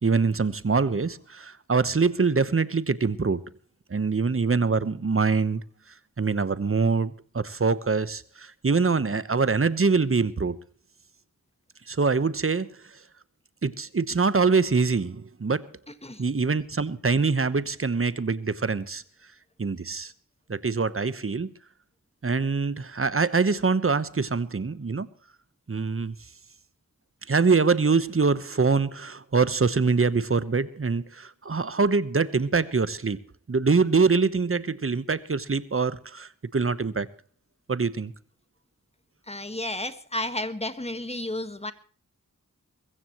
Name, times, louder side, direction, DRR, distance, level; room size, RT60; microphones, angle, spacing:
voice 1, 0.0-3.4 3.9-5.6 6.2-10.6 11.9-12.7 13.6-15.6 16.2-19.0 19.6-20.1 20.5-21.5 22.2-25.1 25.7-26.1 27.3-33.2 33.5-37.1 37.7-38.1, right 4 dB, 40° right, 1.1 m, -24 dB
voice 2, 39.3-41.7, left 1 dB, 20° left, 1.6 m, -32 dB
22.0 x 15.0 x 3.1 m
wide cardioid pair, 55°, 33 cm